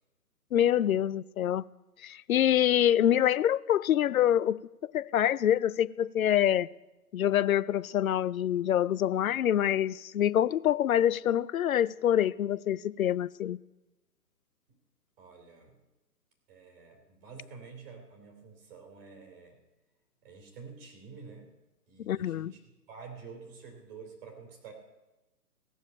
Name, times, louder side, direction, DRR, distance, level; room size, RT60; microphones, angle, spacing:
voice 1, 0.5-1.6 2.0-6.7 7.1-13.6 22.0-22.5, left 11 dB, 60° left, 0.5 m, -26 dB
voice 2, 15.2-15.8 16.5-19.6 20.2-21.5 21.9-22.6 22.9-24.7, right 5 dB, 35° right, 3.5 m, -49 dB
16.0 x 7.2 x 8.5 m
figure-of-eight pair, 140°, 49 cm